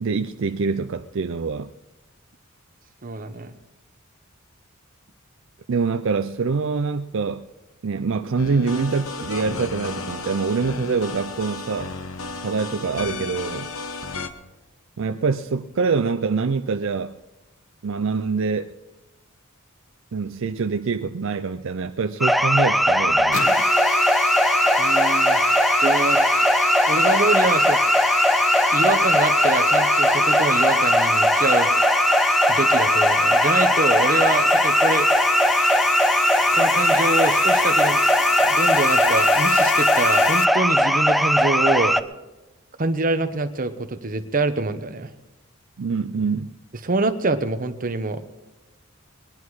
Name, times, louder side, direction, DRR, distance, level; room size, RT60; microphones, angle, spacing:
voice 1, 0.0-1.7 5.7-7.5 7.8-11.9 12.3-13.7 15.0-17.2 17.8-18.7 20.1-23.5 45.8-46.5, right 4 dB, 65° right, 8 dB, 0.5 m, -25 dB
voice 2, 3.0-3.6 24.8-25.4 25.8-26.5 26.9-28.1 28.7-31.7 32.5-35.1 36.5-38.0 38.4-42.0 42.8-45.1 46.8-48.2, right 3 dB, 40° right, 8 dB, 0.9 m, -25 dB
sound 1, 8.4-14.3, left 3 dB, 90° left, 1.0 m, -33 dB
sound 2, 22.2-42.0, equal, ahead, 0.4 m, -19 dB
sound 3, 23.3-40.4, left 7 dB, 65° left, 0.6 m, -27 dB
21.0 x 10.5 x 4.8 m, 1.1 s
head